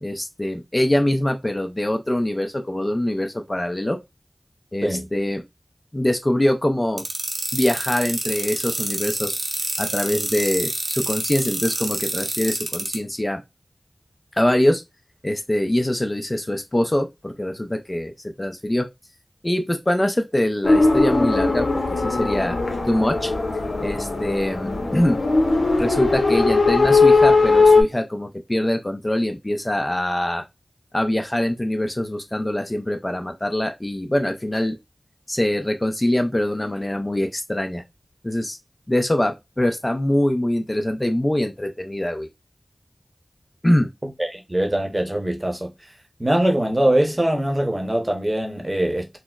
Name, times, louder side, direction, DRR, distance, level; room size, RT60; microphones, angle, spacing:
voice 1, 0.0-4.0 4.7-5.4 5.9-7.0 7.5-9.4 9.8-13.4 14.4-14.8 15.2-18.1 18.4-18.9 19.4-22.6 22.9-23.3 23.8-25.2 25.8-30.4 30.9-34.8 35.3-37.8 38.2-38.6 38.9-42.3 43.6-43.9, left 1 dB, 30° left, 0.4 m, -23 dB
sound 1, 7.0-13.0, right 2 dB, 80° right, 0.8 m, -27 dB
sound 2, 20.6-27.8, left 3 dB, 85° left, 0.7 m, -18 dB
voice 2, 44.0-45.7 46.2-49.2, right 1 dB, 25° right, 0.8 m, -22 dB
4.2 x 2.0 x 2.3 m
wide cardioid pair, 40°, 0 cm